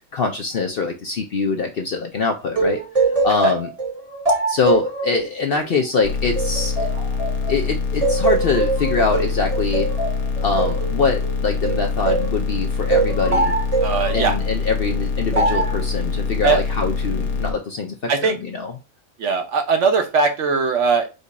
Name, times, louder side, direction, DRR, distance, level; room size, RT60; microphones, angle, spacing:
voice 1, 0.1-2.8 3.2-3.7 4.5-6.9 7.5-9.9 10.4-13.6 14.1-18.7, left 4 dB, 55° left, 3 dB, 0.7 m, -23 dB
sound 1, 2.5-7.6 8.0-12.4 12.9-14.3 15.3-15.8, right 3 dB, 30° right, 1.0 m, -22 dB
sound 2, 6.0-17.5, left 5 dB, 80° left, 1.3 m, -24 dB
voice 2, 13.8-14.4 16.4-16.6 18.1-18.3 19.2-21.1, right 4 dB, 60° right, 6 dB, 1.0 m, -19 dB
5.2 x 2.4 x 4.0 m, 0.28 s
omnidirectional pair, 1.5 m